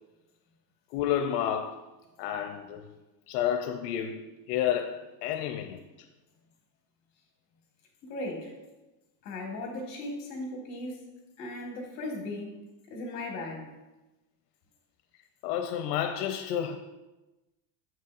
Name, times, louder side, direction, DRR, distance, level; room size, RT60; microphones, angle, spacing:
voice 1, 0.9-1.9 2.2-2.9 3.3-5.8 15.4-16.8, left 9 dB, 80° left, 0.6 m, -30 dB
voice 2, 8.0-8.5 9.2-11.1 11.4-12.5 12.9-13.7, left 2 dB, 35° left, 1.4 m, -37 dB
7.4 x 5.6 x 2.5 m
cardioid pair, 180°, 46 cm